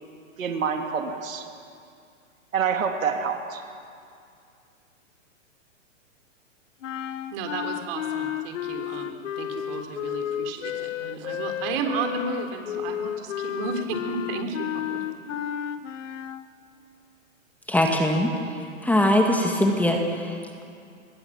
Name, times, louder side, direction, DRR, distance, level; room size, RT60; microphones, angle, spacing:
voice 1, 0.4-1.4 2.5-3.6, right 6 dB, 80° right, 4 dB, 3.1 m, -27 dB
sound 1, 6.8-16.5, left 10 dB, 65° left, 1.4 m, -32 dB
voice 2, 7.3-15.0, right 5 dB, 45° right, 4 dB, 3.8 m, -33 dB
voice 3, 17.7-20.6, left 1 dB, 5° left, 2 dB, 1.9 m, -22 dB
26.5 x 22.0 x 7.5 m, 2.4 s
hypercardioid pair, 140°, 40 cm